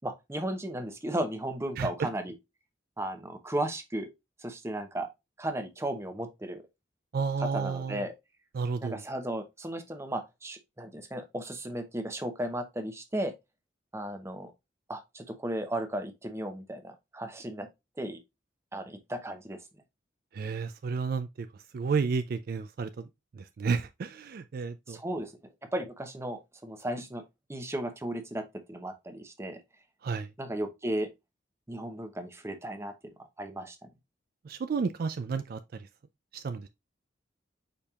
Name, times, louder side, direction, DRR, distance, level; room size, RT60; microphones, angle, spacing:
voice 1, 0.0-2.3 3.0-4.1 4.4-5.1 5.4-6.6 7.4-8.1 8.8-13.3 13.9-14.5 14.9-17.7 18.0-18.2 18.7-19.6 24.9-27.2 27.5-29.6 30.4-31.1 31.7-32.9 33.4-33.8, right 1 dB, 15° right, 0.8 m, -35 dB
voice 2, 7.1-8.0 8.5-9.0 20.3-21.5 21.7-22.9 23.4-25.0 30.0-30.3 34.5-35.6 36.3-36.7, right 5 dB, 50° right, 0.3 m, -31 dB
5.2 x 4.3 x 2.3 m
head